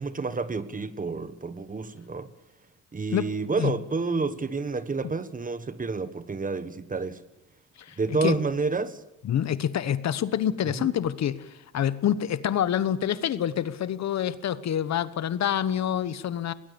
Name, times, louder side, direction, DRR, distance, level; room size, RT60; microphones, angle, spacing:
voice 1, 0.0-2.3 2.9-7.2 8.0-9.0 10.8-10.9, right 4 dB, 25° right, 1.4 m, -29 dB
voice 2, 7.8-8.4 9.2-16.5, left 10 dB, 60° left, 1.2 m, -27 dB
22.0 x 19.0 x 7.1 m
cardioid pair, 90°, 30 cm